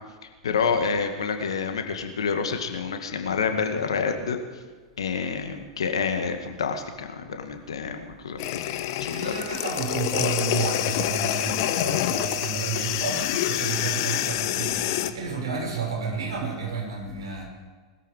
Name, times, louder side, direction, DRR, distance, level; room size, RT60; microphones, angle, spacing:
voice 1, 0.2-4.6 5.0-8.6 9.0-9.3, left 5 dB, 65° left, 6 dB, 1.9 m, -28 dB
sound 1, 8.4-15.1, left 13 dB, 50° left, 1.0 m, -27 dB
voice 2, 9.1-17.4, right 5 dB, 65° right, -1 dB, 6.3 m, -31 dB
20.5 x 13.5 x 5.0 m, 1.5 s
figure-of-eight pair, 95°, 3 cm